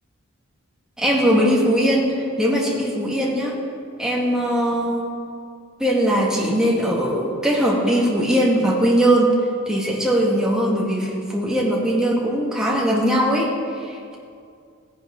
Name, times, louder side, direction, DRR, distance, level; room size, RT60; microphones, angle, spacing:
voice 1, 1.0-3.6 4.0-5.1 5.8-9.4 9.7-14.2, equal, 5° right, -4 dB, 1.8 m, -20 dB
16.0 x 10.5 x 3.8 m, 2.3 s
head